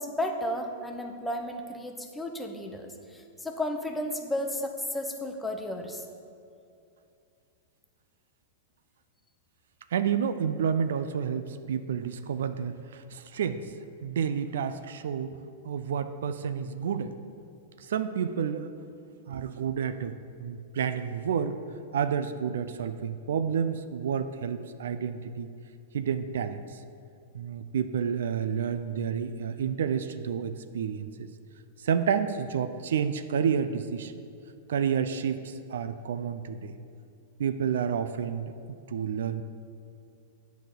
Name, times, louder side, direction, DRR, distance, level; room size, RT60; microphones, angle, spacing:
voice 1, 0.0-6.0, left 1 dB, 10° left, 3 dB, 0.8 m, -33 dB
voice 2, 9.9-13.6 14.0-15.4 15.6-17.1 17.8-18.7 19.3-20.1 20.4-21.6 21.9-25.5 25.9-26.6 27.3-31.3 31.8-34.1 34.7-36.8 37.4-38.5 38.9-39.4, right 7 dB, 75° right, 11 dB, 0.4 m, -30 dB
8.9 x 4.1 x 6.7 m, 2.5 s
hypercardioid pair, 110°, 0 cm